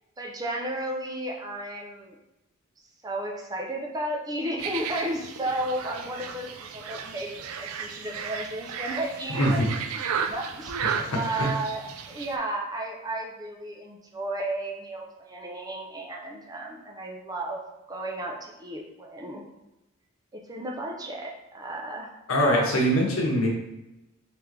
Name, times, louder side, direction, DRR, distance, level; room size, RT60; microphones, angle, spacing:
voice 1, 0.2-2.2 3.0-7.3 7.6-9.6 9.9-17.6 17.9-19.4 20.3-22.1 22.4-22.8, right 1 dB, 20° right, 0 dB, 0.4 m, -33 dB
sound 1, 4.6-12.4, right 6 dB, 75° right, 0.4 m, -34 dB
voice 2, 9.3-9.7 11.4-11.5 22.3-23.5, equal, 75° left, -1 dB, 0.9 m, -22 dB
3.6 x 3.2 x 3.1 m, 0.97 s
head